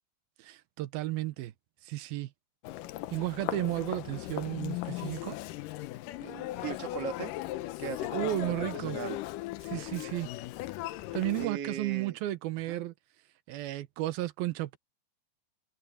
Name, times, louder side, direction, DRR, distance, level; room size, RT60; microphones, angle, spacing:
voice 1, 0.4-1.5 1.8-2.3 3.1-5.4 8.1-9.0 9.6-10.3 11.1-12.9 13.5-14.8, right 16 dB, 85° right, 2.8 m, -33 dB
Human voice, 2.6-11.5, left 16 dB, 75° left, 2.2 m, -38 dB
voice 2, 6.2-7.3 7.8-8.5 8.8-9.2 11.4-12.2 12.7-12.9, right 9 dB, 50° right, 2.5 m, -39 dB
omnidirectional pair, 4.2 m